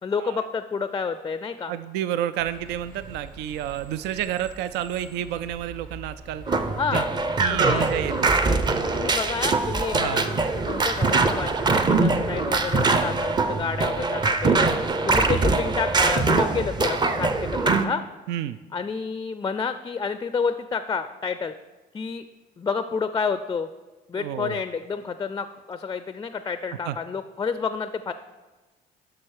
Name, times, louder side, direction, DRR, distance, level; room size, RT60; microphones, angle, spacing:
voice 1, 0.0-1.7 6.8-7.1 7.5-7.9 8.9-10.4 10.7-14.6 15.1-18.0 18.7-21.5 21.9-22.3 22.6-23.7 24.1-28.1, left 5 dB, 20° left, 11 dB, 0.4 m, -29 dB
voice 2, 1.7-6.4 6.9-7.0 7.4-8.4 9.9-10.3 15.0-15.1 18.3-18.6 24.1-24.6 26.8-27.0, right 11 dB, 85° right, 13 dB, 0.4 m, -30 dB
sound 1, 2.4-17.1, right 2 dB, 50° right, 1.3 m, -45 dB
sound 2, 6.5-17.8, right 3 dB, 25° right, 0.6 m, -23 dB
7.6 x 5.9 x 6.4 m, 1.2 s
cardioid pair, 110°, 17 cm